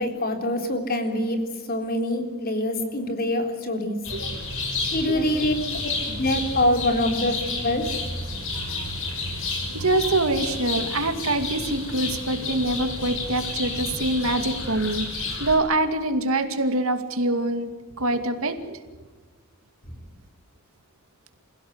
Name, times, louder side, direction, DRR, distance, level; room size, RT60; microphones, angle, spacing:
voice 1, 0.0-4.0 4.9-7.9, left 1 dB, 45° left, 5 dB, 3.7 m, -25 dB
sound 1, 4.0-15.6, left 3 dB, 60° left, 6.5 m, -31 dB
voice 2, 9.7-17.7 18.0-18.8, right 2 dB, 70° right, 8 dB, 2.4 m, -25 dB
27.5 x 16.5 x 8.1 m, 1.3 s
head